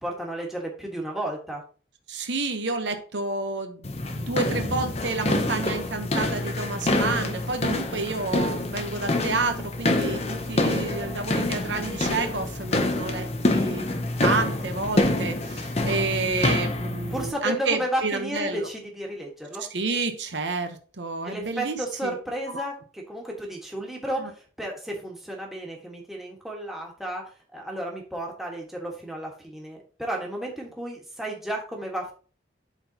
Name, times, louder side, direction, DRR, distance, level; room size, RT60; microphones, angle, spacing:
voice 1, 0.0-1.6 17.1-19.7 21.2-32.1, right 1 dB, ahead, -2 dB, 1.5 m, -33 dB
voice 2, 2.1-18.7 19.7-22.1 22.5-22.6 24.2-24.3, right 3 dB, 75° right, 7 dB, 1.0 m, -30 dB
sound 1, 3.8-17.3, left 2 dB, 35° left, 0.7 m, -26 dB
12.0 x 4.0 x 2.9 m, 0.39 s
head